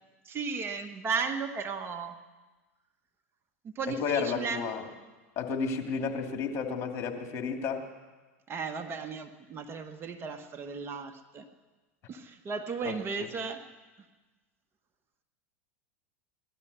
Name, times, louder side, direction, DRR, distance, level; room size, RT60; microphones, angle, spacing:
voice 1, 0.2-2.2 3.6-4.6 8.5-11.4 12.1-13.6, right 5 dB, 30° right, 7 dB, 1.2 m, -35 dB
voice 2, 3.9-4.8 5.4-7.8, left 5 dB, 40° left, 3 dB, 2.5 m, -32 dB
17.5 x 12.0 x 6.8 m, 1.2 s
hypercardioid pair, 100°, 8 cm